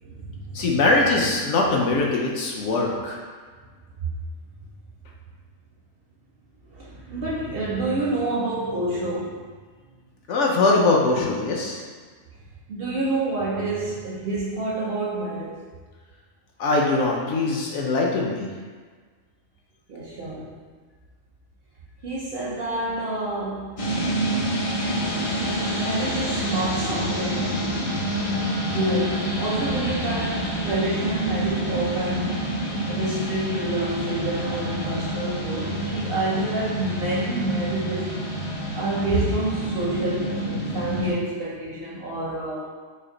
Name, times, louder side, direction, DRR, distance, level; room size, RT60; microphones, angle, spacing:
voice 1, 0.0-0.8 4.0-4.1 6.6-9.5 12.7-15.6 19.9-20.5 22.0-23.8 24.9-25.1 25.4-27.6 28.6-32.5 32.9-38.1 38.8-42.7, right 2 dB, 60° right, -5 dB, 0.6 m, -28 dB
voice 2, 0.5-3.2 10.3-11.8 16.6-18.5, left 3 dB, 65° left, -1 dB, 0.8 m, -22 dB
sound 1, 23.8-41.1, equal, 45° left, 0.4 m, -27 dB
3.2 x 2.8 x 3.7 m, 1.5 s
omnidirectional pair, 1.4 m